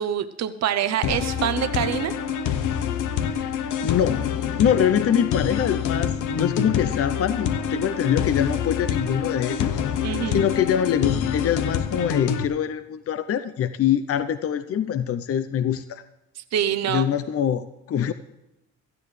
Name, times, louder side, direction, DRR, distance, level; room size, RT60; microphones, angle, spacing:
voice 1, 0.0-2.1 10.0-10.4 16.4-17.1, right 10 dB, 60° right, 11 dB, 0.8 m, -25 dB
sound 1, 1.0-12.4, left 8 dB, 90° left, 0.9 m, -26 dB
voice 2, 3.2-4.3 4.6-16.0 16.9-18.1, left 9 dB, 50° left, 11 dB, 0.7 m, -24 dB
16.5 x 13.5 x 3.3 m, 0.96 s
cardioid pair, 90°, 30 cm